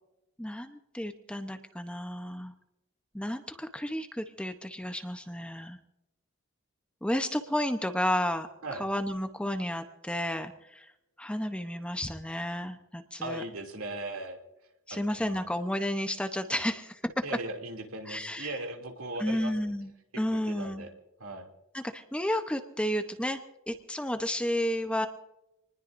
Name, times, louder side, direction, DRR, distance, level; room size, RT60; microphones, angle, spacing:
voice 1, 0.4-2.5 3.1-5.8 7.0-10.9 11.2-13.4 14.9-17.1 18.1-18.6 19.2-19.9 20.2-20.9 21.7-23.4 23.7-25.1, left 1 dB, 5° left, 7 dB, 0.8 m, -32 dB
voice 2, 13.2-14.4 14.9-15.4 17.2-19.8 20.1-20.9 21.2-21.5, right 2 dB, 80° right, 3 dB, 2.8 m, -38 dB
26.5 x 20.0 x 2.6 m, 0.92 s
head